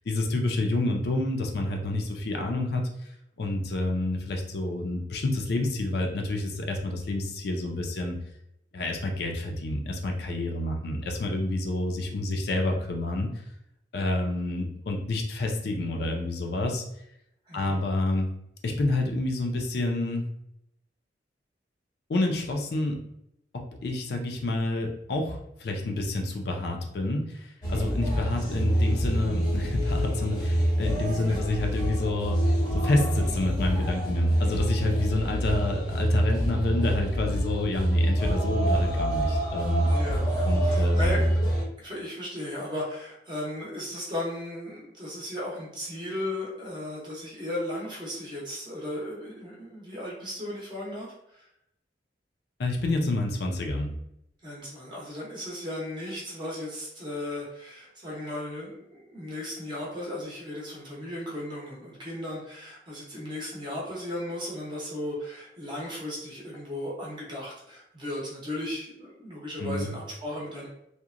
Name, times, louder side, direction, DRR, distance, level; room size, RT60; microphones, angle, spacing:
voice 1, 0.1-3.1 3.4-8.2 8.7-13.3 13.9-16.8 17.5-18.3 18.6-20.3 22.1-23.0 23.5-32.4 32.7-39.9 40.4-41.3 52.6-53.9 69.6-69.9, left 2 dB, 60° left, 2 dB, 0.4 m, -28 dB
voice 2, 17.5-17.8 31.1-31.4 39.8-41.2 41.8-51.5 54.4-70.7, left 1 dB, 25° right, -5 dB, 0.6 m, -36 dB
sound 1, 27.6-41.6, right 1 dB, 25° left, 0.7 m, -26 dB
2.8 x 2.1 x 2.4 m, 0.79 s
head